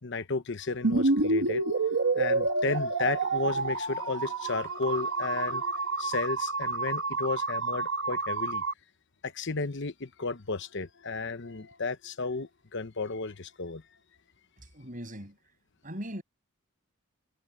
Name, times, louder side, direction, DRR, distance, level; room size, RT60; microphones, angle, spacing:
voice 1, 0.0-8.6 9.2-13.8, left 4 dB, 60° left, 1.0 m, -33 dB
sound 1, 0.8-8.7, right 3 dB, 75° right, 1.5 m, -29 dB
voice 2, 14.7-15.4 15.8-16.2, equal, 40° right, 7.0 m, -39 dB
head